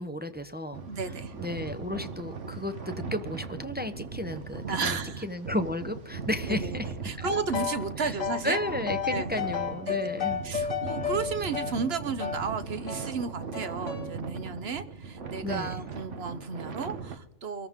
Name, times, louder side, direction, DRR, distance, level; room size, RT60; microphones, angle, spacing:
voice 1, 0.0-0.8 1.4-5.0 5.2-7.3 8.0-8.1 8.4-10.4 15.4-15.7, left 1 dB, 10° right, 8 dB, 0.6 m, -33 dB
sound 1, 0.7-17.2, right 5 dB, 75° right, 1.4 m, -39 dB
voice 2, 0.9-1.3 4.7-5.3 6.5-6.7 7.0-8.6 9.1-9.4 9.9-10.0 10.4-17.7, right 5 dB, 55° right, 11 dB, 1.2 m, -33 dB
sound 2, 7.2-7.9 8.2-12.5 12.9-13.1 13.5-14.1, left 7 dB, 85° left, 1.6 m, -33 dB
24.5 x 14.0 x 3.7 m, 0.85 s
omnidirectional pair, 1.3 m